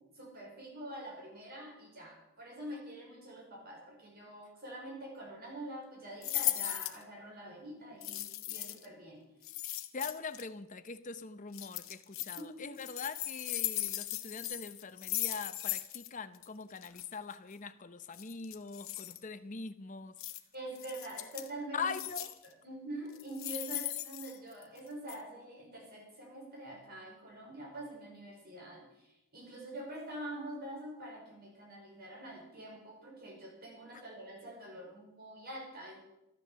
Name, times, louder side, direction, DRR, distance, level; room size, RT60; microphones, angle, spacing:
voice 1, 0.0-9.2 12.3-12.6 20.5-21.9 22.4-36.0, right 1 dB, 45° right, 5.1 m, -45 dB
sound 1, 6.2-7.0 8.0-8.9 9.4-10.4 11.5-12.4 12.8-16.1 16.3-16.5 16.8-17.0 18.1-19.2 20.2-20.4 20.8-21.5 21.9-22.5 23.1-24.8 25.1-25.2, left 15 dB, 65° left, 0.9 m, -37 dB
voice 2, 9.9-20.2 21.7-22.4, left 5 dB, 35° left, 0.7 m, -42 dB
13.5 x 10.5 x 6.9 m
head